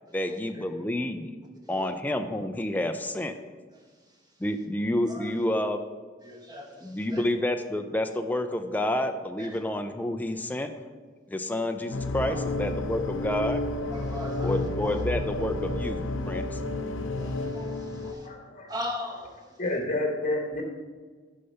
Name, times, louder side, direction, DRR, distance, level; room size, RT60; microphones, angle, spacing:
voice 1, 0.1-1.4 1.7-3.4 4.4-5.8 6.8-10.7 11.3-13.6 14.4-16.6, left 1 dB, 10° left, 6 dB, 0.4 m, -29 dB
voice 2, 6.2-7.2 9.4-9.6 12.2-12.4 13.9-14.9 17.2-18.3 18.7-19.3 19.7-19.8, left 1 dB, 20° right, 1 dB, 1.2 m, -39 dB
sound 1, 11.9-18.1, left 2 dB, 85° left, 0.6 m, -31 dB
voice 3, 18.2-18.7 19.6-20.6, left 2 dB, 40° left, 1 dB, 1.0 m, -29 dB
6.6 x 5.7 x 5.5 m, 1.5 s
head